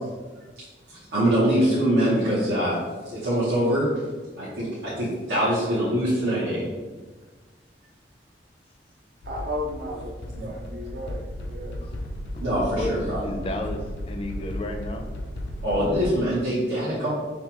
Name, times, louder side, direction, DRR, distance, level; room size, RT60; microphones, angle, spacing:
voice 1, 1.1-2.8 3.1-3.9 4.4-6.6 10.4-10.5 12.4-13.2 15.6-17.1, equal, 85° right, -10 dB, 1.0 m, -23 dB
sound 1, 9.2-16.1, left 1 dB, 85° left, 0.5 m, -35 dB
voice 2, 9.2-11.9, left 1 dB, 60° right, -3 dB, 0.5 m, -34 dB
voice 3, 12.3-15.1, left 1 dB, 30° left, 4 dB, 0.4 m, -32 dB
5.6 x 2.3 x 2.9 m, 1.3 s
head